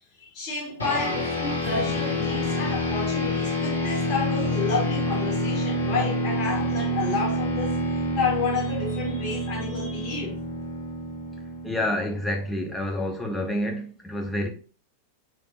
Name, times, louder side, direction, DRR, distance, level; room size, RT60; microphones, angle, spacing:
voice 1, 0.2-7.8 8.2-10.3, left 4 dB, 40° left, 1.8 m, -30 dB
sound 1, 0.8-12.5, left 1 dB, 75° left, 0.9 m, -27 dB
Strum, 1.6-6.3, left 1 dB, 25° left, 1.6 m, -43 dB
voice 2, 11.6-14.5, left 1 dB, 5° left, 0.8 m, -28 dB
3.3 x 3.0 x 2.7 m
figure-of-eight pair, 90°, 0 cm